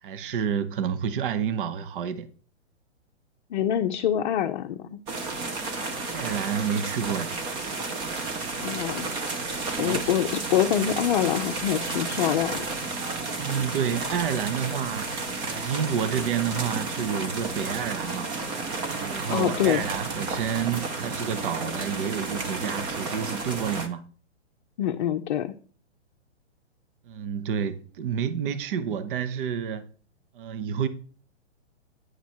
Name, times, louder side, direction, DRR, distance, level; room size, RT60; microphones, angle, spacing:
voice 1, 0.0-2.3 6.1-7.4 9.7-10.0 13.4-18.3 19.0-24.0 27.1-29.9 30.3-30.9, right 8 dB, 50° right, 0.8 m, -29 dB
voice 2, 3.5-5.0 8.6-9.1 9.8-12.7 19.3-19.8 24.8-25.5, left 10 dB, 45° left, 0.6 m, -25 dB
sound 1, 5.1-23.9, right 3 dB, 15° right, 0.5 m, -32 dB
9.4 x 4.6 x 4.3 m
hypercardioid pair, 140°, 35 cm